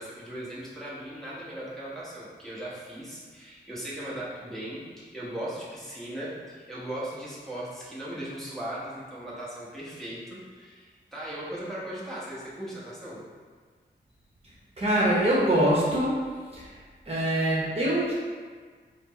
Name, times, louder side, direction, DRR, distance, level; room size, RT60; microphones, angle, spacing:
voice 1, 0.0-13.2, right 1 dB, ahead, -9 dB, 1.1 m, -38 dB
voice 2, 14.8-16.2 16.5-16.8 17.1-18.1, right 1 dB, 35° right, -7 dB, 1.0 m, -24 dB
4.3 x 2.0 x 4.0 m, 1.6 s
cardioid pair, 75°, 19 cm